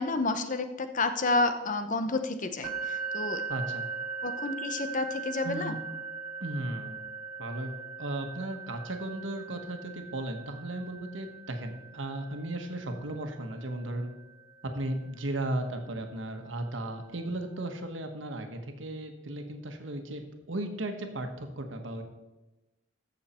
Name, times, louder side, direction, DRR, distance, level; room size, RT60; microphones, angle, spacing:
voice 1, 0.0-3.4 4.2-5.7, left 3 dB, 45° left, 8 dB, 0.8 m, -30 dB
sound 1, 2.6-16.5, right 5 dB, 30° right, 3.4 m, -40 dB
voice 2, 3.5-3.8 5.4-5.7 6.4-7.0 7.4-7.7 8.0-14.1 14.6-20.2 20.5-22.0, right 1 dB, 80° right, 5 dB, 1.4 m, -35 dB
14.5 x 6.5 x 4.3 m, 1.1 s
head